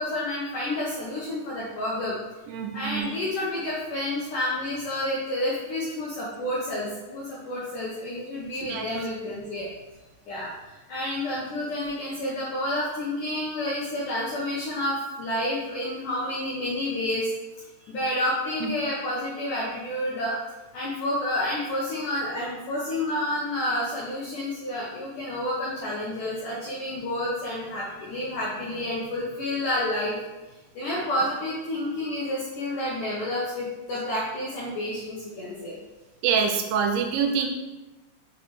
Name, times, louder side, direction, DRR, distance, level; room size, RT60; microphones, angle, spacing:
voice 1, 0.0-2.2 2.7-9.7 10.3-17.3 17.8-20.4 20.7-30.2 30.7-35.8, left 1 dB, 75° left, -6 dB, 1.9 m, -29 dB
voice 2, 2.5-3.1 8.7-8.9 18.6-18.7 36.2-37.5, right 6 dB, 80° right, 4 dB, 2.9 m, -25 dB
6.7 x 4.0 x 4.7 m, 1.1 s
omnidirectional pair, 5.2 m